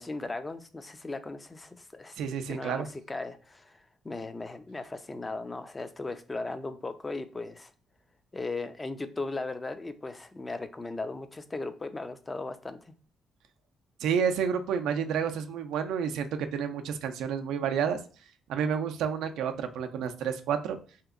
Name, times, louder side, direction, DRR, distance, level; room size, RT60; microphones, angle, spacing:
voice 1, 0.0-2.2 2.5-7.7 8.3-12.9, left 3 dB, 20° left, 0.4 m, -37 dB
voice 2, 2.2-2.9 14.0-18.0 18.5-20.8, right 7 dB, 85° right, 0.4 m, -30 dB
3.4 x 2.9 x 2.4 m
cardioid pair, 90°, 0 cm